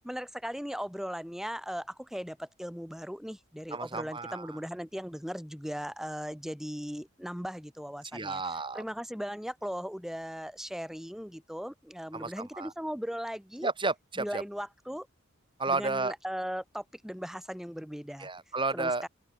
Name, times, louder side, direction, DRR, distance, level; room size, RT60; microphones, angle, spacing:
voice 1, 0.0-8.4 8.7-13.7 14.2-15.1 15.7-18.3 18.7-19.1, equal, ahead, 6.1 m, -38 dB
voice 2, 3.7-4.6 8.1-8.8 12.1-12.7 13.6-14.4 15.6-16.1 18.2-19.1, right 3 dB, 25° right, 6.1 m, -32 dB
open air
head